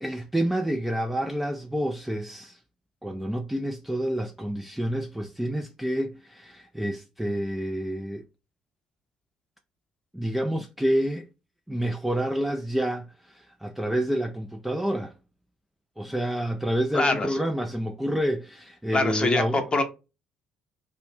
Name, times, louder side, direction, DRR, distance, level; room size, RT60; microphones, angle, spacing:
voice 1, 0.0-2.6 3.0-8.2 10.1-11.3 11.7-15.1 16.0-19.7, right 1 dB, 5° right, 0.3 m, -28 dB
voice 2, 16.9-17.4 18.9-19.8, left 3 dB, 25° left, 0.8 m, -24 dB
2.4 x 2.1 x 3.3 m
figure-of-eight pair, 50°, 4 cm